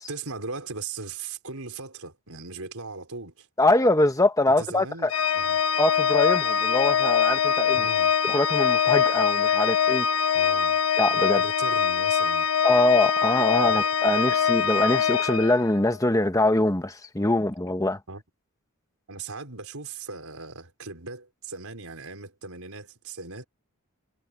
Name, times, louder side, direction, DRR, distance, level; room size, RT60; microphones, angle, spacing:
voice 1, 0.1-3.5 4.5-5.6 7.7-8.1 10.3-10.8 11.4-12.5 13.7-13.8 18.1-18.2 19.1-23.5, right 4 dB, 80° right, 4.8 m, -38 dB
voice 2, 3.6-5.1 5.8-7.8 8.2-10.3 11.0-11.4 12.6-18.0, left 2 dB, 15° left, 1.1 m, -23 dB
Organ, 5.1-16.0, left 7 dB, 75° left, 1.0 m, -23 dB
head